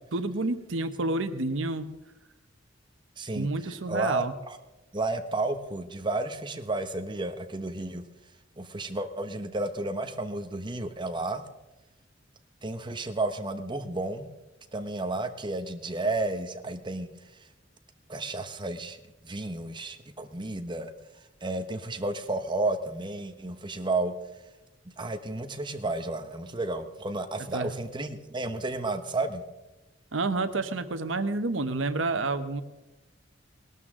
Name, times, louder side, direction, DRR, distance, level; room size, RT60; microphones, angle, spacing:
voice 1, 0.1-1.9 3.3-4.3 27.5-27.7 30.1-32.6, right 2 dB, 80° right, 10 dB, 1.0 m, -29 dB
voice 2, 3.2-4.6 4.9-8.0 8.6-11.4 12.6-14.3 14.7-17.1 18.1-20.9 21.4-24.1 25.0-29.4, right 2 dB, 25° right, 8 dB, 1.1 m, -32 dB
20.0 x 12.5 x 3.7 m, 1.0 s
head